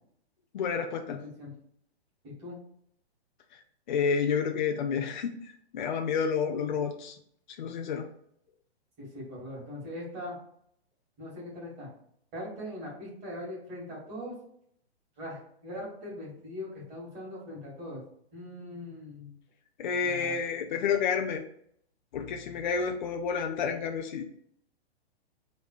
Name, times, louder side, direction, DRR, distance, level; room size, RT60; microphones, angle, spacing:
voice 1, 0.5-1.2 3.9-7.2 7.6-8.1 19.8-21.4 22.1-24.2, left 6 dB, 45° left, 4 dB, 0.6 m, -30 dB
voice 2, 1.1-1.5 2.2-2.6 9.0-10.4 11.2-11.9 12.3-14.3 15.2-18.0 18.3-19.3 20.0-20.4, left 1 dB, 25° right, -4 dB, 2.6 m, -41 dB
5.3 x 4.0 x 4.7 m, 0.67 s
hypercardioid pair, 165°, 33 cm